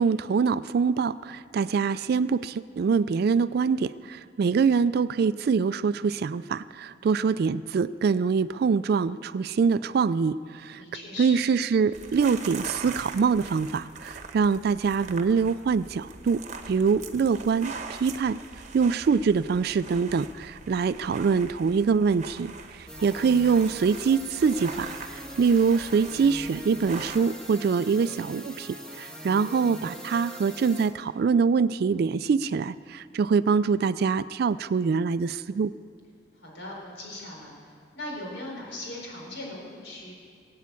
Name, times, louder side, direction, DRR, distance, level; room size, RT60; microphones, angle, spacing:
voice 1, 0.0-10.8 11.2-16.4 16.7-18.4 18.7-35.7, right 5 dB, 60° right, 15 dB, 0.3 m, -24 dB
voice 2, 10.8-11.4 23.0-23.6 36.3-40.1, left 1 dB, 90° left, -1 dB, 4.4 m, -40 dB
sound 1, 11.9-27.2, right 4 dB, 40° right, 1.0 m, -42 dB
sound 2, 22.9-30.9, right 1 dB, 5° left, 1.7 m, -42 dB
20.5 x 8.6 x 8.3 m, 2.2 s
head